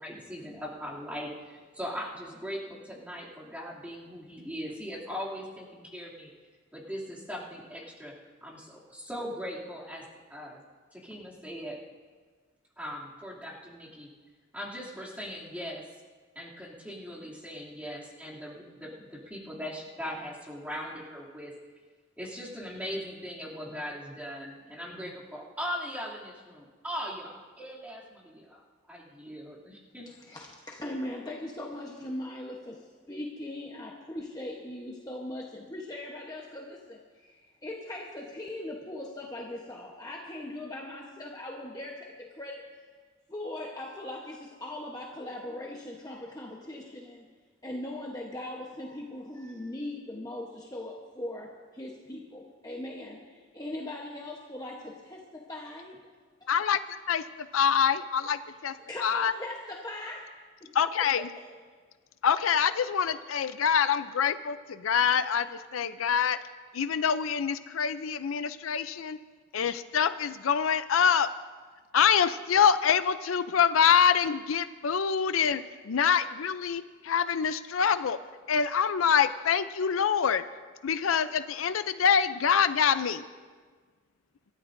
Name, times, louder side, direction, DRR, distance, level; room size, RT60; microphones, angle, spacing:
voice 1, 0.0-6.3 6.7-8.1 8.4-10.0 10.3-10.6 10.9-11.8 12.8-14.1 14.5-15.8 16.3-21.5 22.2-28.6 28.9-30.1, equal, 5° right, -6 dB, 2.7 m, -39 dB
voice 2, 30.1-42.7 43.3-47.3 47.6-56.0 58.8-60.5, left 1 dB, 20° left, -1 dB, 1.0 m, -40 dB
voice 3, 56.5-56.8 57.1-57.2 57.5-58.7 59.0-59.3 60.8-61.3 62.2-66.4 66.7-69.2 69.5-71.3 71.9-78.2 78.5-80.4 80.8-83.3, left 7 dB, 90° left, 12 dB, 0.5 m, -25 dB
26.0 x 13.5 x 2.6 m, 1.5 s
head